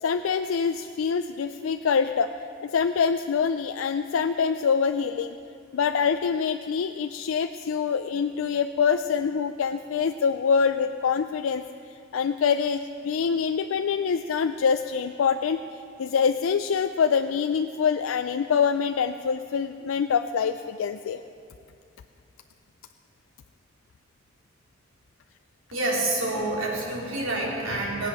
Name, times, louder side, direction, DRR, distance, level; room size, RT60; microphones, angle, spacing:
voice 1, 0.0-5.4 5.7-11.6 12.1-15.6 16.0-21.2, left 6 dB, 90° left, 8 dB, 0.4 m, -25 dB
voice 2, 25.7-28.1, right 2 dB, 85° right, -4 dB, 3.4 m, -27 dB
19.0 x 8.2 x 6.2 m, 2.5 s
head